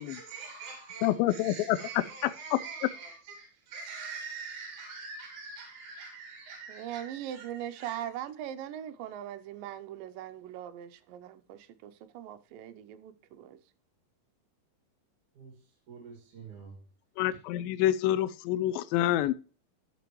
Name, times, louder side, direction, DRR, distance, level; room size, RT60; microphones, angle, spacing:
voice 1, 0.0-8.1 15.4-15.6 15.9-16.8, right 4 dB, 55° right, 3.4 m, -44 dB
voice 2, 1.0-1.8 2.2-2.6 17.2-19.3, left 13 dB, 80° left, 2.2 m, -27 dB
voice 3, 6.7-13.6, right 11 dB, 80° right, 2.2 m, -40 dB
12.0 x 6.8 x 3.0 m
omnidirectional pair, 4.3 m